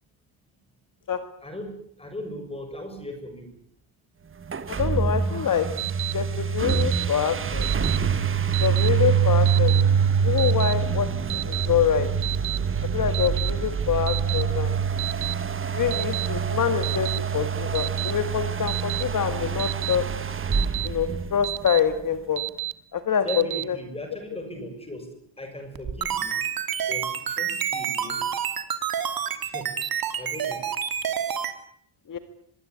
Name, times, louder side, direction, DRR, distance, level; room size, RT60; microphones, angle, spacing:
voice 1, 1.4-3.5 23.2-26.4 26.9-28.2 29.3-29.7 30.2-30.6, left 1 dB, 10° left, 6 dB, 7.0 m, -38 dB
sound 1, 4.4-21.9, right 7 dB, 25° right, 1.4 m, -25 dB
voice 2, 4.7-5.7 6.1-7.7 8.6-9.7 10.2-12.1 12.9-14.8 15.7-20.0 20.8-22.4 22.9-23.8 32.1-32.2, left 8 dB, 40° left, 10 dB, 1.9 m, -25 dB
Alarm, 5.8-6.1 6.7-7.1 7.6-8.0 8.5-8.9 9.5-9.8 10.4-10.7 11.3-11.7 12.2-12.6 13.1-13.5 14.1-14.4 15.0-15.3 15.9-16.3 16.8-17.2 17.8-18.1 18.7-19.0 19.6-20.0 20.5-20.9 21.4-21.8 22.4-22.7 23.3-23.6, right 17 dB, 85° right, 1.4 m, -30 dB
sound 2, 25.8-31.5, right 8 dB, 45° right, 3.0 m, -28 dB
25.0 x 22.0 x 9.8 m, 0.65 s
cardioid pair, 175°, 47 cm